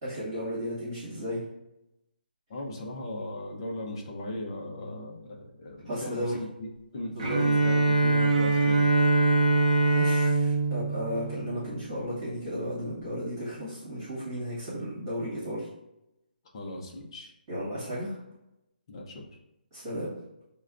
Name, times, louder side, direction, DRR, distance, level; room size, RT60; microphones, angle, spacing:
voice 1, 0.0-1.4 5.8-6.4 7.1-7.4 9.9-15.7 17.5-18.2 19.7-20.1, equal, 25° right, -9 dB, 1.4 m, -34 dB
voice 2, 2.5-6.7 6.9-8.9 16.5-17.3 18.9-19.3, left 1 dB, 30° left, 0 dB, 0.6 m, -37 dB
Bowed string instrument, 7.2-12.1, right 2 dB, 40° right, 0.6 m, -24 dB
6.0 x 2.2 x 2.4 m, 0.88 s
hypercardioid pair, 170°, 5 cm